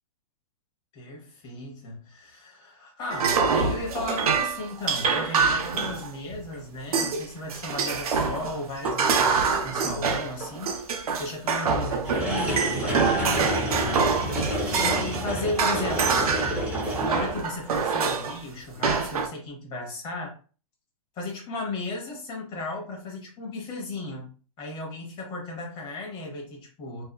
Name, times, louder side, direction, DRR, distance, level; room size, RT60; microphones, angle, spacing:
voice 1, 0.9-14.0 14.4-16.4 17.0-20.4 21.2-24.3 24.6-27.0, left 2 dB, 25° left, -1 dB, 0.9 m, -35 dB
sound 1, 3.1-6.4 6.9-7.2 7.5-15.3 15.6-18.4 18.8-19.3, right 5 dB, 85° right, 0.5 m, -25 dB
sound 2, 5.3-5.4 5.8-6.1 6.5-6.6 7.7-7.8 8.8-8.9 9.9-10.0 12.1-17.5, equal, 5° right, 0.5 m, -30 dB
2.7 x 2.3 x 2.3 m, 0.38 s
hypercardioid pair, 145°, 18 cm